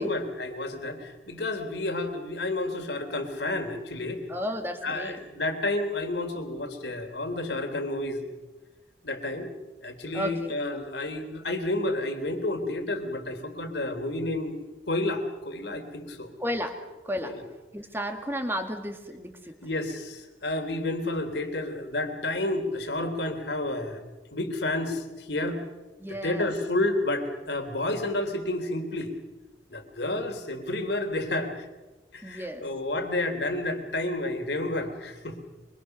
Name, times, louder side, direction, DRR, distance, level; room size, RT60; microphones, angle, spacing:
voice 1, 0.0-4.2 4.8-8.2 9.0-9.5 9.8-16.3 17.2-17.4 19.6-24.0 24.3-25.6 26.1-29.1 29.7-31.7 32.1-35.4, left 2 dB, 70° left, 6 dB, 3.3 m, -30 dB
voice 2, 4.3-5.2 10.1-10.5 16.4-17.4 17.7-19.5 26.0-26.5 32.2-32.7, equal, 10° right, 5 dB, 2.2 m, -33 dB
24.5 x 24.0 x 6.7 m, 1.1 s
head